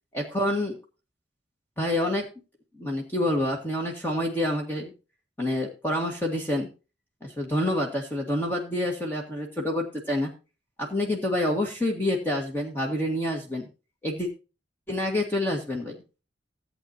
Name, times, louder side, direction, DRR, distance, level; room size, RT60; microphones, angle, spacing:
voice 1, 0.1-0.8 1.8-2.3 2.8-4.9 5.4-6.7 7.2-10.3 10.8-13.7 14.0-14.3 14.9-16.0, left 1 dB, 10° left, 0 dB, 1.7 m, -27 dB
15.0 x 8.3 x 2.8 m, 0.31 s
head